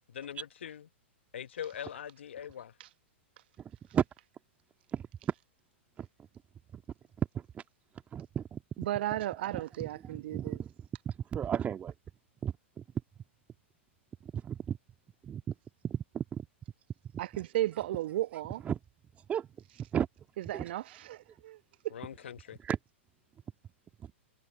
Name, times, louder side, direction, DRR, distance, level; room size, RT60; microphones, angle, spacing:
voice 1, 0.1-0.9 1.3-2.7 21.9-22.6, left 9 dB, 65° left, 1.3 m, -42 dB
voice 2, 7.2-7.6 8.1-8.6 9.1-9.2 9.5-10.7 11.1-11.9 12.4-12.8 14.2-14.8 15.2-15.4 15.8-16.5 18.6-18.8 19.3-19.5 19.9-20.1 20.5-20.7 22.6-22.8 24.0-24.1, right 9 dB, 20° right, 1.9 m, -34 dB
voice 3, 8.8-10.6 17.2-18.6 20.4-21.6, right 14 dB, 55° right, 1.3 m, -34 dB
figure-of-eight pair, 105°, 7 cm